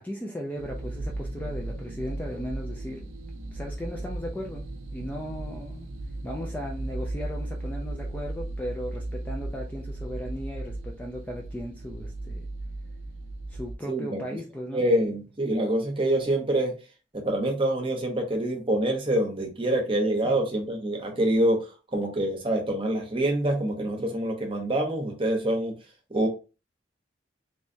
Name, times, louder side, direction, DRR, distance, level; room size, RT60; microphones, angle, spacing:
voice 1, 0.0-3.1 3.5-5.9 6.2-12.5 13.5-14.9 20.2-20.4, equal, 10° left, 0.4 m, -37 dB
sound 1, 0.6-13.8, right 2 dB, 90° right, 0.5 m, -36 dB
voice 2, 13.9-14.2 14.7-16.8 17.1-21.6 21.9-25.7 26.1-26.3, right 1 dB, 25° right, 0.9 m, -26 dB
3.3 x 3.1 x 2.6 m
head